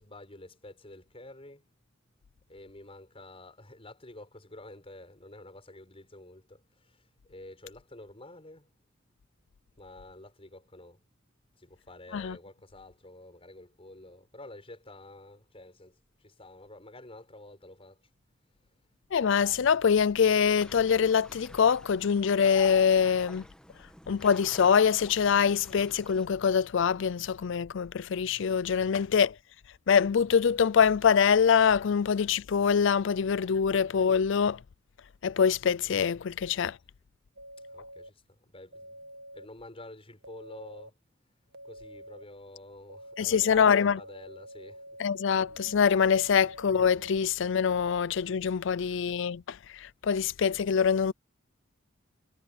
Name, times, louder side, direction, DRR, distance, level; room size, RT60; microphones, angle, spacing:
voice 1, 0.0-1.6 2.5-6.6 7.3-8.7 9.8-11.0 11.6-16.0 16.2-18.0 37.7-38.1 38.4-39.0 39.3-40.9 41.6-44.8, left 2 dB, 30° left, 5.9 m, -49 dB
voice 2, 19.1-23.4 24.1-29.3 29.9-34.6 35.2-36.8 43.2-44.0 45.0-51.1, left 7 dB, 70° left, 0.4 m, -24 dB
sound 1, 20.6-26.3, left 1 dB, 5° left, 1.4 m, -50 dB
sound 2, 37.4-38.1 38.7-39.5 40.2-40.9 41.5-42.2 42.9-47.2, equal, 55° right, 1.8 m, -47 dB
head